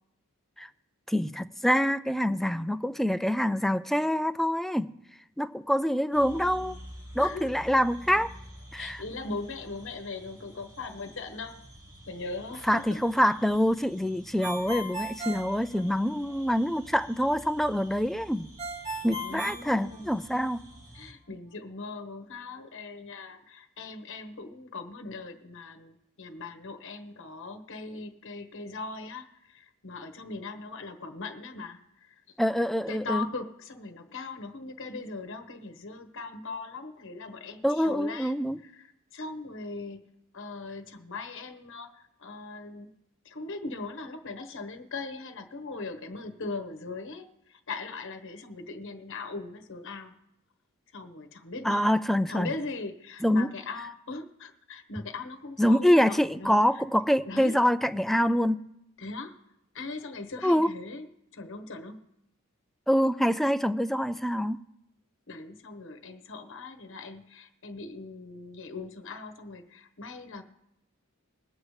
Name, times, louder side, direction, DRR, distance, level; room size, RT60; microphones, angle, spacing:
voice 1, 1.1-4.9 5.4-6.8 7.1-8.3 8.7-9.0 12.7-18.5 19.0-20.6 32.4-33.3 37.6-38.6 51.6-52.5 53.2-53.5 55.6-58.6 60.4-60.7 62.9-64.6, equal, ahead, 10 dB, 0.3 m, -25 dB
sound 1, 6.1-21.1, equal, 90° right, 2.6 m, -49 dB
voice 2, 7.2-7.6 8.7-11.6 12.1-13.0 14.6-14.7 19.1-20.1 20.9-32.2 32.9-40.1 40.3-42.9 43.2-50.2 50.9-56.6 57.3-57.6 59.0-59.4 59.7-62.1 65.3-70.4, left 3 dB, 60° left, 7 dB, 1.1 m, -40 dB
Ringtone, 14.4-16.3 18.6-20.5, right 1 dB, 25° right, 1.4 m, -37 dB
21.5 x 7.9 x 3.2 m, 0.83 s
head